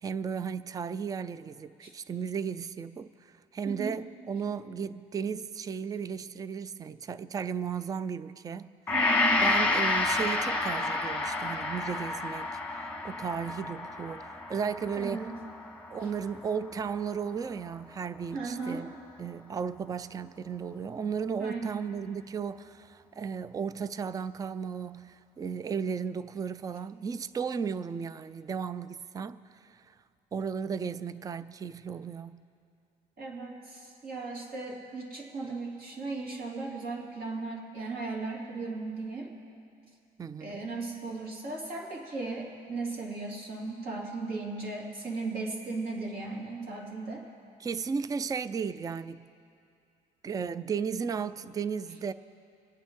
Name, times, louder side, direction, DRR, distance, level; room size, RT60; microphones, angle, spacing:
voice 1, 0.0-8.8 9.4-12.5 12.7-15.3 15.9-18.9 19.2-29.8 30.3-32.4 40.2-40.7 47.6-49.3 50.2-52.1, right 6 dB, 20° right, 0.4 m, -35 dB
Gong, 8.9-17.2 17.6-17.7, left 3 dB, 10° left, 1.1 m, -30 dB
voice 2, 8.9-9.5 15.0-15.3 18.3-18.9 21.4-21.8 33.2-39.3 40.4-47.2, right 3 dB, 65° right, 2.8 m, -36 dB
26.5 x 8.9 x 3.7 m
cardioid pair, 110°, 17 cm